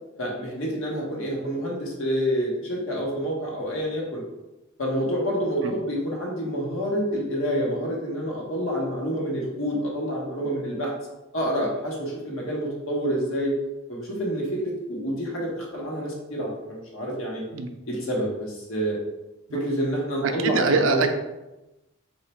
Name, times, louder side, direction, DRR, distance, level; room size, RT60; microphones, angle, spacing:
voice 1, 0.2-4.2 4.8-10.9 11.3-13.5 13.9-17.4 17.9-19.0 19.5-21.1, equal, 75° left, -2 dB, 1.1 m, -28 dB
voice 2, 20.2-21.1, right 4 dB, 65° right, 5 dB, 0.4 m, -23 dB
3.0 x 2.4 x 4.4 m, 1.0 s
head